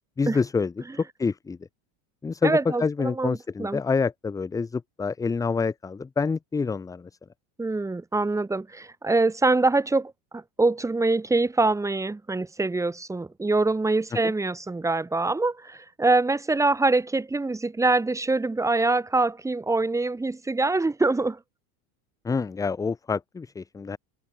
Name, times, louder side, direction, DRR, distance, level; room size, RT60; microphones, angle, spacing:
voice 1, 0.2-0.8 1.2-1.6 2.2-7.1 22.2-24.0, left 4 dB, 10° left, 0.7 m, -27 dB
voice 2, 2.4-3.8 7.6-21.4, right 3 dB, 5° right, 3.0 m, -24 dB
open air
cardioid pair, 170°, 42 cm